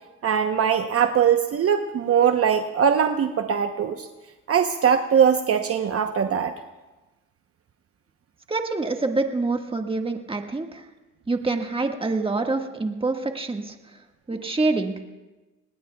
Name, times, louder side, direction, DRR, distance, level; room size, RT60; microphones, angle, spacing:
voice 1, 0.2-4.1 4.5-6.5, right 8 dB, 50° right, 6 dB, 0.9 m, -21 dB
voice 2, 8.5-10.8 11.3-13.7 14.3-14.9, right 3 dB, 20° right, 4 dB, 1.7 m, -26 dB
27.5 x 19.5 x 2.3 m, 1.1 s
cardioid pair, 90°, 30 cm